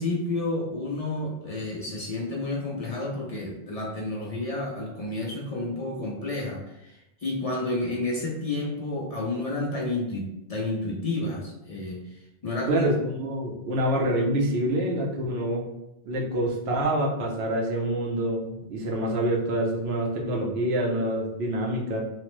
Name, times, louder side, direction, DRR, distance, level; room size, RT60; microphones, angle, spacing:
voice 1, 0.0-12.9, left 2 dB, 50° left, -3 dB, 0.4 m, -30 dB
voice 2, 12.7-15.6 16.0-22.0, right 1 dB, 85° right, -1 dB, 0.9 m, -26 dB
3.1 x 2.0 x 3.0 m, 0.90 s
omnidirectional pair, 1.0 m